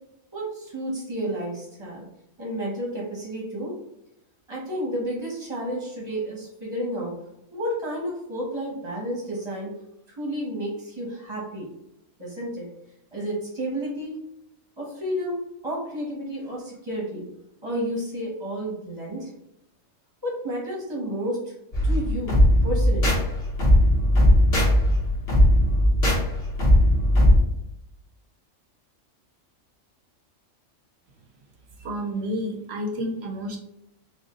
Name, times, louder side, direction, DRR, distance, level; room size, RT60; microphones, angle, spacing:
voice 1, 0.3-2.1 2.4-3.8 4.5-7.2 7.5-9.7 10.2-11.7 12.2-12.7 13.1-14.2 14.8-17.3 17.6-19.3 20.2-21.5 21.8-22.4 22.6-23.2, equal, 25° right, -4 dB, 0.9 m, -31 dB
sound 1, 21.7-27.4, equal, 50° left, 1.3 m, -19 dB
voice 2, 31.8-33.6, equal, 60° right, 1 dB, 0.9 m, -30 dB
4.8 x 2.2 x 2.9 m, 0.84 s
omnidirectional pair, 1.4 m